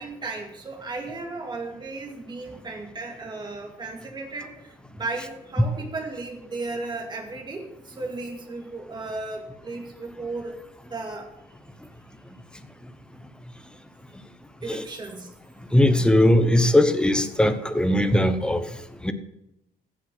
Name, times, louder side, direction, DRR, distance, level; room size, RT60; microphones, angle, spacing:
voice 1, 0.0-10.5 10.9-11.3 14.6-15.3, right 3 dB, 25° right, 1 dB, 2.4 m, -35 dB
voice 2, 15.7-18.7 19.0-19.1, left 1 dB, 5° left, 10 dB, 1.0 m, -19 dB
15.5 x 6.3 x 6.0 m, 0.89 s
cardioid pair, 110°, 17 cm